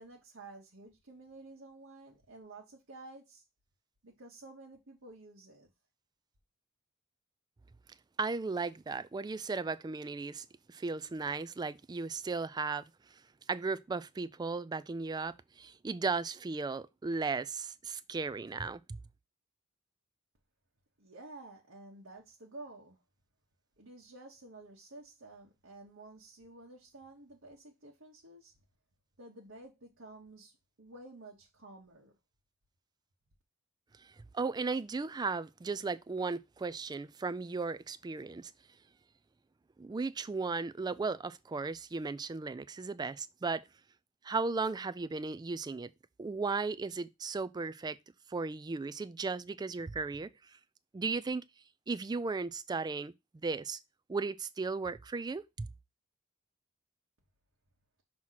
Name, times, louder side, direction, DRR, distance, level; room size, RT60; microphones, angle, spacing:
voice 1, 0.0-3.4 4.0-5.7 21.0-23.0 23.8-28.5 29.2-32.1, right 2 dB, 65° right, 1.2 m, -52 dB
voice 2, 8.2-12.9 13.5-19.0 34.0-38.5 39.8-43.6 44.2-45.9 46.2-48.0 48.3-50.3 50.9-51.4 51.9-53.8 54.1-55.7, right 4 dB, 20° right, 0.3 m, -36 dB
6.2 x 2.9 x 5.7 m
head